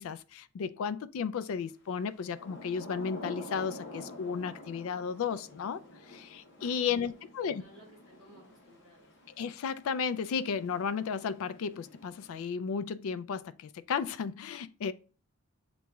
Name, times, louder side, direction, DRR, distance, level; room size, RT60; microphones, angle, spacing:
voice 1, 0.0-5.8 6.1-7.6 9.4-14.9, left 6 dB, 70° left, 0.3 m, -34 dB
Thunder / Rain, 2.1-12.6, left 2 dB, 50° left, 1.0 m, -48 dB
voice 2, 6.8-9.4, right 1 dB, ahead, 2.4 m, -58 dB
7.2 x 3.0 x 2.3 m
head